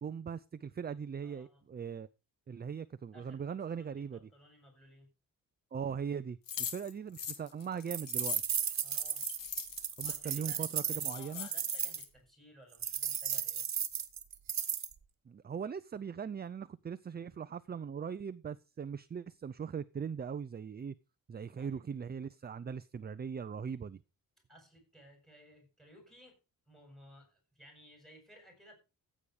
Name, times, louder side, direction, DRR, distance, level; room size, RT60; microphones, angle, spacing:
voice 1, 0.0-2.1 2.5-4.3 5.7-8.4 10.0-11.5 15.3-20.9 21.3-24.0, right 7 dB, 30° right, 0.5 m, -40 dB
voice 2, 1.2-1.6 3.1-5.1 8.8-9.2 10.0-13.6 21.3-21.8 24.5-26.4 26.7-28.7, equal, ahead, 7.7 m, -59 dB
sound 1, 6.5-10.2 10.7-10.8 11.0-12.1, left 7 dB, 70° left, 2.2 m, -42 dB
sound 2, 7.9-12.0 12.8-14.9, right 8 dB, 50° right, 1.4 m, -35 dB
15.0 x 8.6 x 4.9 m
wide cardioid pair, 130°, 34 cm